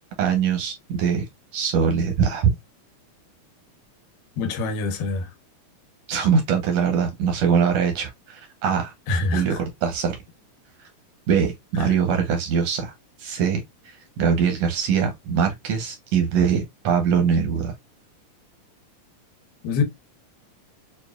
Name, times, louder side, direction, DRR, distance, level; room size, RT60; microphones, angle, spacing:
voice 1, 0.2-1.2 1.5-2.5 6.1-8.9 9.3-10.2 11.3-12.9 13.2-17.7, right 7 dB, 75° right, 1.5 m, -22 dB
voice 2, 4.4-5.3 9.1-9.6 11.8-11.9 19.6-19.8, left 4 dB, 90° left, 2.7 m, -25 dB
6.6 x 2.4 x 2.4 m
omnidirectional pair, 3.9 m